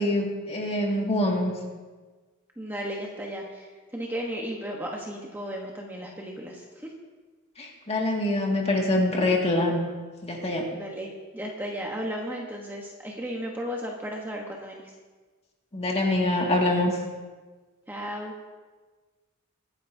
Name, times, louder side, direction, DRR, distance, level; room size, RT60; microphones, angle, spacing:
voice 1, 0.0-1.5 7.6-9.8 10.2-10.7 15.7-16.9, left 1 dB, 30° left, -1 dB, 2.1 m, -25 dB
voice 2, 2.6-6.9 10.7-14.9 17.9-18.3, equal, 10° right, -1 dB, 1.1 m, -35 dB
22.5 x 10.0 x 2.8 m, 1.4 s
head